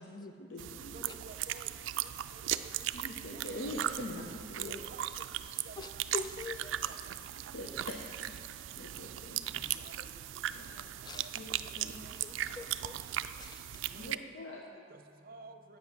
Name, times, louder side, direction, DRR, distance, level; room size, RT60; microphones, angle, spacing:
voice 1, 0.0-1.2 2.9-4.8 7.4-9.7 10.6-10.9 11.3-12.1 13.9-14.6, left 1 dB, 75° left, -1 dB, 0.8 m, -44 dB
sound 1, 0.6-14.1, right 12 dB, 80° right, 0.3 m, -38 dB
voice 2, 0.9-2.9 3.3-3.4 3.9-4.2 4.6-5.0 5.6-6.2 6.5-7.0 9.7-10.2 10.7-12.1 13.7-15.8, right 3 dB, 50° right, 7 dB, 0.6 m, -55 dB
voice 3, 5.8-6.7 11.0-11.3 11.8-12.9 13.4-13.7, left 4 dB, 20° left, 10 dB, 0.3 m, -44 dB
8.3 x 7.7 x 6.0 m, 2.3 s
head